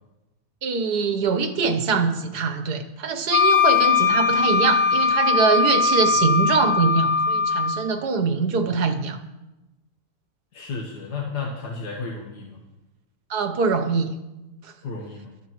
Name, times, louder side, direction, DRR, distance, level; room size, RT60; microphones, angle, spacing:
voice 1, 0.6-9.2 13.3-14.1 14.6-14.7, right 4 dB, 80° right, 8 dB, 1.6 m, -23 dB
Wind instrument woodwind instrument, 3.3-7.8, left 5 dB, 60° left, 1.5 m, -20 dB
voice 2, 10.5-12.6 14.8-15.3, left 4 dB, 90° left, -1 dB, 2.0 m, -33 dB
19.0 x 13.0 x 3.1 m, 1.0 s
omnidirectional pair, 1.7 m